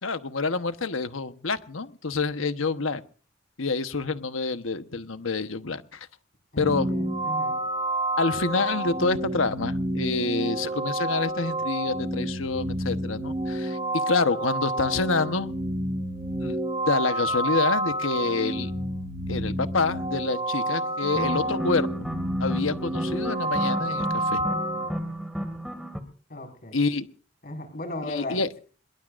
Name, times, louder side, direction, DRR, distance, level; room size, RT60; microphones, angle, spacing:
voice 1, 0.0-3.0 3.6-6.1 6.6-6.9 8.2-15.5 16.4-16.6 16.9-18.7 19.3-21.9 22.4-24.4 26.7-27.1 28.0-28.5, left 3 dB, 85° left, 10 dB, 1.1 m, -27 dB
voice 2, 6.5-7.6 26.3-26.8 27.4-28.6, left 1 dB, 50° left, 4 dB, 5.3 m, -37 dB
sound 1, 6.6-24.9, right 1 dB, 25° right, 4.6 m, -29 dB
sound 2, 21.0-26.0, equal, ahead, 2.1 m, -33 dB
24.5 x 22.0 x 2.6 m, 0.41 s
head